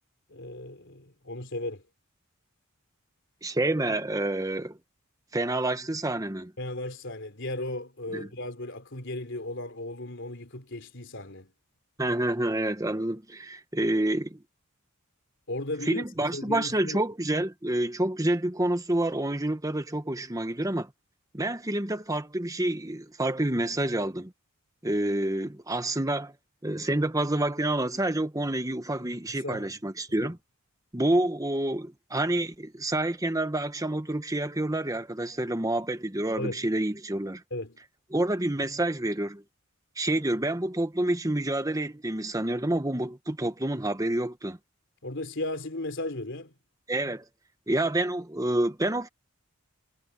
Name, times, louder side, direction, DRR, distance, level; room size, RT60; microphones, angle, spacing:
voice 1, 0.3-1.8 6.6-11.5 15.5-16.0 16.3-17.0 29.3-29.7 30.2-30.3 36.4-36.7 37.5-37.8 45.0-46.5, left 1 dB, 55° left, 3.6 m, -36 dB
voice 2, 3.4-4.8 5.3-6.5 8.1-8.3 12.0-14.4 15.9-20.9 21.3-24.3 24.8-26.3 26.6-30.4 30.9-37.4 38.1-39.4 40.0-44.6 46.9-47.2 47.7-49.1, right 1 dB, 15° right, 1.2 m, -28 dB
head